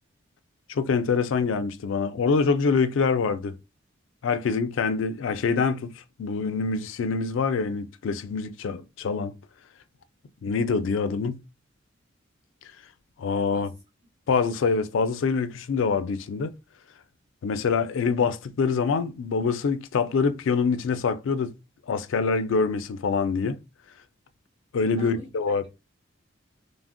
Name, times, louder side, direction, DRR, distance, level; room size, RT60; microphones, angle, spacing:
voice 1, 0.7-3.5 4.2-5.9 6.2-9.3 10.4-11.4 13.2-13.7 14.3-16.5 17.4-21.5 21.9-23.6 24.7-25.6, left 5 dB, 70° left, 0.4 m, -25 dB
voice 2, 24.9-25.7, right 1 dB, 30° right, 0.9 m, -45 dB
3.4 x 2.0 x 2.5 m
head